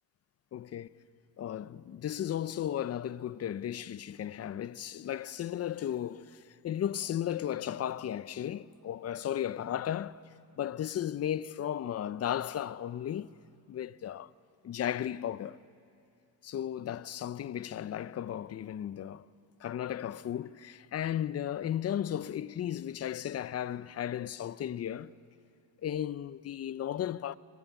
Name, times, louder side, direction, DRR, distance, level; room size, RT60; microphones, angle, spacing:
voice 1, 0.5-1.0 1.4-10.2 10.6-13.3 13.7-14.3 14.6-15.6 16.4-19.3 19.6-25.1 25.8-27.4, left 10 dB, 35° left, 0.5 m, -35 dB
21.5 x 19.5 x 8.1 m
cardioid pair, 110°, 43 cm